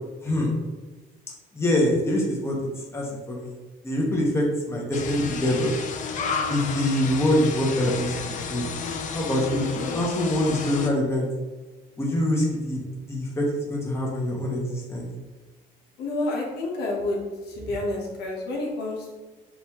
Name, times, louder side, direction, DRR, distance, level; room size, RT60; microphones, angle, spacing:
voice 1, 0.2-0.5 1.5-2.6 2.9-3.5 3.8-5.7 6.5-8.6 9.1-9.7 9.9-11.3 12.0-12.8 13.0-15.1, left 1 dB, 15° left, -3 dB, 1.1 m, -24 dB
sound 1, 4.9-10.9, left 5 dB, 50° left, 0.5 m, -31 dB
voice 2, 16.0-17.2 17.5-19.1, left 2 dB, 80° left, -1 dB, 1.1 m, -29 dB
5.4 x 2.7 x 3.0 m, 1.3 s
cardioid pair, 110°, 17 cm